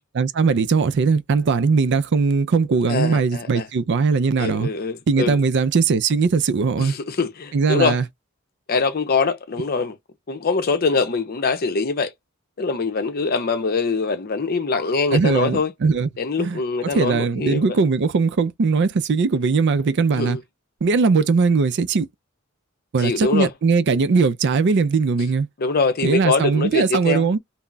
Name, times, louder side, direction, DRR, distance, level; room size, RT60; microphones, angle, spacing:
voice 1, 0.1-4.7 5.1-6.9 7.5-8.1 15.1-16.1 16.4-16.6 16.9-20.4 20.8-22.1 22.9-25.5 26.0-27.4, right 4 dB, 60° right, 0.4 m, -19 dB
voice 2, 2.9-3.7 4.4-5.4 6.8-8.0 8.7-10.0 10.3-12.1 12.6-15.7 16.2-17.8 20.1-20.4 23.0-23.5 25.6-27.3, left 4 dB, 50° left, 0.6 m, -23 dB
2.3 x 2.0 x 3.8 m
head